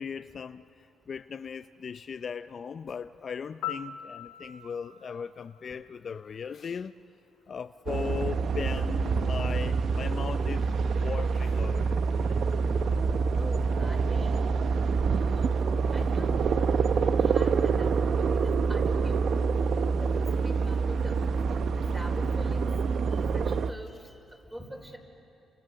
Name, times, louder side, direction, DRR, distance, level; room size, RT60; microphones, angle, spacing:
voice 1, 0.0-6.9 7.5-12.0, left 6 dB, 45° left, 0.5 m, -38 dB
Piano, 3.6-6.5 14.7-14.9, left 10 dB, 90° left, 0.9 m, -42 dB
sound 1, 7.9-23.7, right 5 dB, 60° right, 0.8 m, -26 dB
voice 2, 13.3-14.4 15.1-15.5 15.9-16.4 17.2-17.9 18.3-19.2 20.0-21.1 21.7-22.8 23.0-23.9 24.5-25.0, equal, 5° right, 4.5 m, -44 dB
30.0 x 26.5 x 6.8 m
cardioid pair, 90°, 0 cm